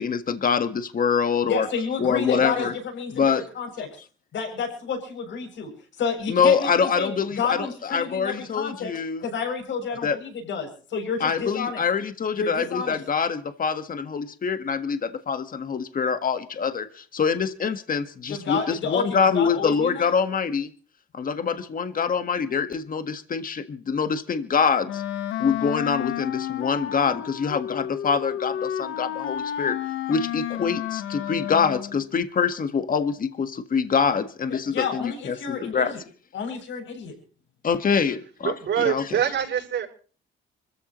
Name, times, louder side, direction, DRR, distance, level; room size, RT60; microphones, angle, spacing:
voice 1, 0.0-1.7 2.0-2.7 3.1-3.4 6.3-9.2 10.0-10.2 11.2-20.7 21.1-25.0 25.4-29.8 30.1-35.9 37.6-39.0, left 6 dB, 45° left, 1.7 m, -25 dB
voice 2, 1.5-3.2 3.5-3.9 4.3-5.7 6.0-8.9 9.2-11.8 12.3-13.0 18.3-20.1 34.5-35.9 36.3-37.1, left 6 dB, 70° left, 7.5 m, -30 dB
Wind instrument woodwind instrument, 24.9-32.0, left 10 dB, 90° left, 1.3 m, -31 dB
voice 3, 38.4-39.9, right 9 dB, 65° right, 6.9 m, -25 dB
26.0 x 14.5 x 3.1 m
cardioid pair, 90°, 20 cm